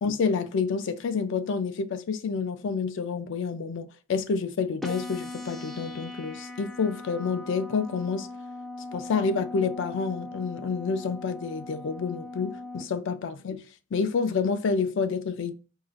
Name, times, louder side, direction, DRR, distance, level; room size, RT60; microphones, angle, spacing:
voice 1, 0.0-8.3 8.9-13.6 13.9-15.5, left 5 dB, 65° left, 0.4 m, -28 dB
sound 1, 4.8-12.8, left 2 dB, ahead, 0.4 m, -40 dB
4.7 x 2.4 x 2.4 m
head